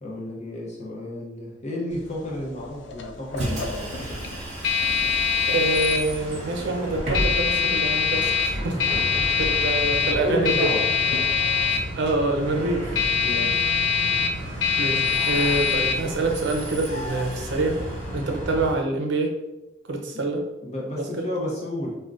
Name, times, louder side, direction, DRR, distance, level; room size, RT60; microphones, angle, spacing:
voice 1, 0.0-3.9 10.2-10.8 13.2-13.6 20.1-20.2 20.6-22.0, left 1 dB, 35° left, -3 dB, 0.7 m, -31 dB
sound 1, 1.9-18.7, left 6 dB, 70° left, 0.4 m, -25 dB
Bus, 3.3-18.7, right 1 dB, 35° right, 0.9 m, -33 dB
voice 2, 5.5-8.8 9.4-10.7 12.0-13.0 14.8-17.8 18.1-19.3 19.9-20.5 21.0-21.2, right 2 dB, 65° right, 3 dB, 0.5 m, -26 dB
3.6 x 2.2 x 2.4 m, 0.98 s
head